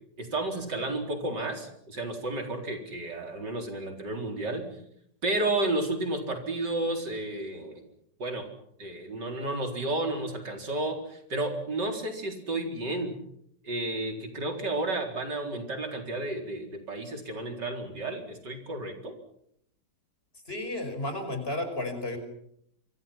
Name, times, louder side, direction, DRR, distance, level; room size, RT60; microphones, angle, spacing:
voice 1, 0.2-4.6 5.2-7.8 8.2-8.5 8.8-13.2 13.6-19.1, right 2 dB, 75° right, 3 dB, 4.8 m, -32 dB
voice 2, 20.5-22.2, left 1 dB, 30° left, 6 dB, 5.6 m, -32 dB
28.5 x 25.5 x 5.8 m, 0.72 s
omnidirectional pair, 1.9 m